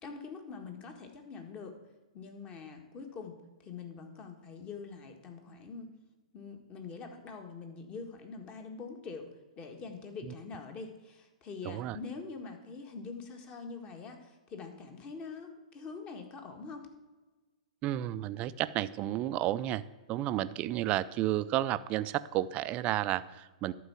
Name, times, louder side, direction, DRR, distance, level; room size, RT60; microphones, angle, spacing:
voice 1, 0.0-1.8 2.1-3.4 3.6-5.9 6.3-9.3 9.6-16.9, left 4 dB, 30° left, 5 dB, 1.7 m, -44 dB
voice 2, 11.6-12.0 17.8-19.8 20.1-23.7, right 14 dB, 35° right, 15 dB, 0.4 m, -32 dB
11.5 x 4.6 x 8.3 m, 1.2 s
hypercardioid pair, 125°, 4 cm